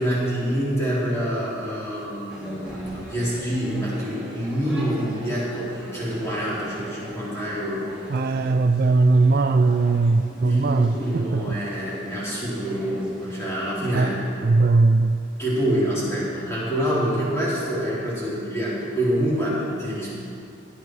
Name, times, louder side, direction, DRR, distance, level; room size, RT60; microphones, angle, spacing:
voice 1, 0.0-7.9 10.4-14.1 15.4-20.1, equal, 15° left, -9 dB, 3.8 m, -26 dB
sound 1, 2.3-14.2, equal, 5° right, 2.3 m, -41 dB
voice 2, 8.1-11.6 13.9-14.1 14.4-15.2, right 3 dB, 50° right, 7 dB, 0.4 m, -19 dB
16.5 x 9.4 x 4.8 m, 2.6 s
head